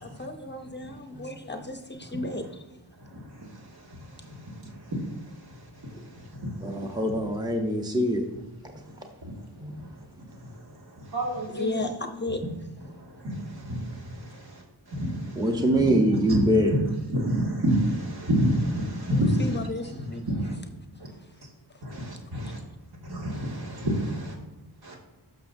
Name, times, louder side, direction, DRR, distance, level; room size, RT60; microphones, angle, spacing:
voice 1, 0.0-2.6 11.5-12.4 19.1-20.4 20.9-21.4 21.7-21.8 23.9-24.0, left 2 dB, 25° left, 6 dB, 0.6 m, -35 dB
voice 2, 6.6-8.2 8.6-8.8 9.6-9.7 15.4-16.7, right 1 dB, 10° right, 2 dB, 0.8 m, -24 dB
voice 3, 11.1-11.9 13.6-13.8 14.9-15.0 15.8-15.9 16.3-16.8 17.1-19.4 20.3-20.5 22.3-22.5 23.1-24.3, equal, 65° right, -3 dB, 2.1 m, -26 dB
11.5 x 6.3 x 2.6 m, 1.0 s
wide cardioid pair, 140°, 40 cm